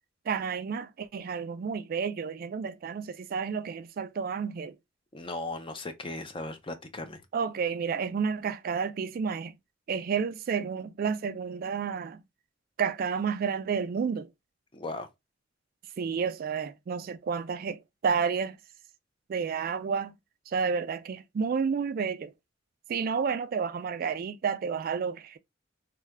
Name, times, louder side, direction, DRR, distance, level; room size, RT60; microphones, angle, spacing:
voice 1, 0.3-4.8 7.3-9.6 9.9-12.2 12.8-14.3 16.0-18.6 19.3-20.2 20.5-22.3 22.9-25.4, right 6 dB, 50° right, 0.3 m, -30 dB
voice 2, 5.1-7.2 14.7-15.1, left 2 dB, 25° left, 0.5 m, -37 dB
3.2 x 2.2 x 3.4 m
head